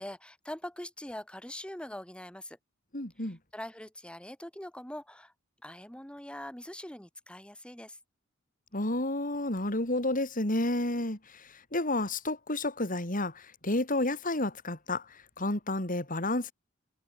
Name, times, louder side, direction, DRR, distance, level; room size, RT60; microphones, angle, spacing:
voice 1, 0.0-2.6 3.2-5.3 5.6-8.0, left 1 dB, 5° left, 2.5 m, -43 dB
voice 2, 2.9-3.4 8.7-16.5, left 2 dB, 45° left, 4.5 m, -31 dB
head